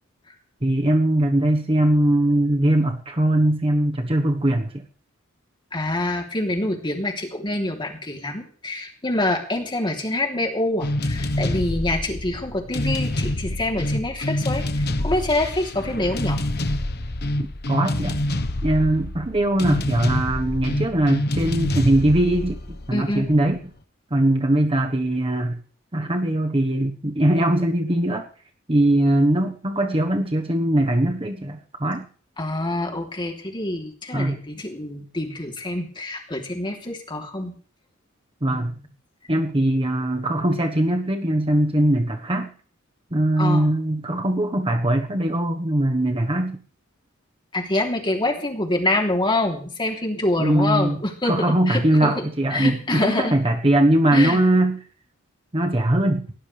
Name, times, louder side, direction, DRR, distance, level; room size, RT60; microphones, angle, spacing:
voice 1, 0.6-4.8 17.7-18.2 18.6-23.6 24.1-25.6 25.9-28.3 28.7-32.1 34.1-34.4 38.4-38.7 39.3-42.5 43.1-46.6 50.4-54.8 55.5-56.3, right 1 dB, 25° right, 4 dB, 1.3 m, -21 dB
voice 2, 5.7-16.4 22.9-23.3 32.4-37.5 38.5-38.7 43.4-43.7 47.5-51.3 51.7-53.4 54.1-54.4, left 1 dB, 25° left, 2 dB, 3.3 m, -26 dB
sound 1, 10.8-23.5, left 1 dB, 50° left, 1.2 m, -27 dB
19.5 x 18.0 x 3.5 m, 0.42 s
head